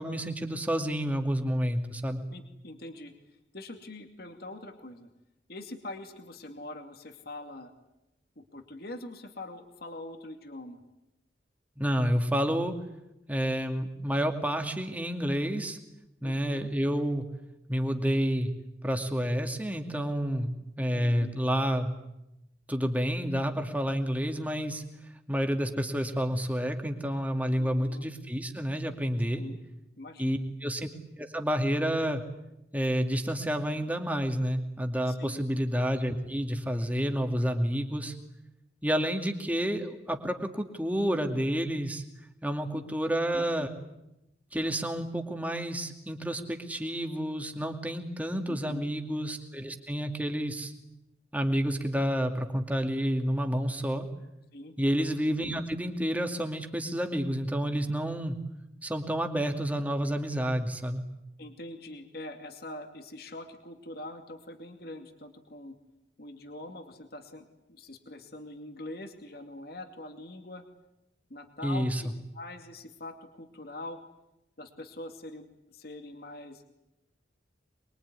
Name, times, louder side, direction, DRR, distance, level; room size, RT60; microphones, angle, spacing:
voice 1, 0.0-2.2 11.8-12.8 13.3-15.8 16.2-17.3 17.7-18.5 18.8-20.5 20.8-21.9 22.7-24.8 25.3-29.4 30.2-30.9 31.2-32.2 32.7-38.1 38.8-42.0 42.4-43.7 44.5-50.7 51.3-54.0 54.8-58.4 58.8-61.0 71.6-72.0, equal, 10° right, 4 dB, 2.4 m, -29 dB
voice 2, 2.3-3.1 3.5-5.1 5.5-7.7 8.4-10.8 16.2-16.7 20.8-21.3 27.5-28.1 29.4-29.6 30.0-30.4 35.1-35.4 42.4-42.9 48.5-48.9 54.5-54.7 61.4-65.8 66.2-70.6 71.3-72.1 72.3-74.0 74.6-76.7, left 2 dB, 55° left, 5 dB, 2.6 m, -43 dB
25.0 x 22.5 x 9.8 m, 0.90 s
head